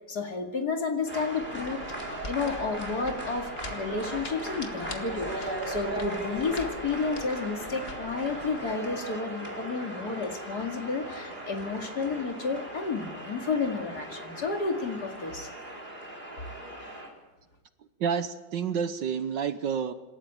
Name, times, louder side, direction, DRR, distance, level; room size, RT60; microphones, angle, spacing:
voice 1, 0.1-15.5, left 4 dB, 50° left, 4 dB, 2.7 m, -31 dB
sound 1, 1.1-17.1, right 1 dB, 20° right, 4.7 m, -38 dB
sound 2, 1.4-8.7, left 2 dB, 30° left, 1.9 m, -45 dB
voice 2, 18.0-19.9, right 7 dB, 65° right, 10 dB, 1.6 m, -29 dB
27.0 x 14.0 x 8.9 m, 1.1 s
omnidirectional pair, 2.3 m